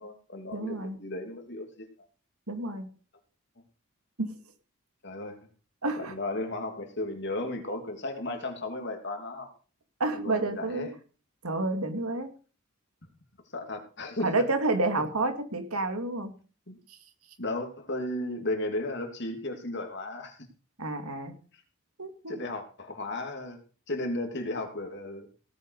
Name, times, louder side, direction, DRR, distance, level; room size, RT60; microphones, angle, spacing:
voice 1, 0.0-1.8 5.0-5.4 6.0-9.5 10.1-10.9 13.5-14.4 16.7-16.8 17.4-20.4 22.3-23.6 23.9-25.3, left 2 dB, 50° left, 4 dB, 3.0 m, -34 dB
voice 2, 0.5-1.0 2.5-2.9 4.2-4.3 5.8-6.1 10.0-10.9 11.4-12.3 14.2-16.3 20.8-21.3 22.0-22.4, right 2 dB, 85° right, 7 dB, 2.4 m, -29 dB
17.5 x 9.3 x 4.9 m, 0.38 s
head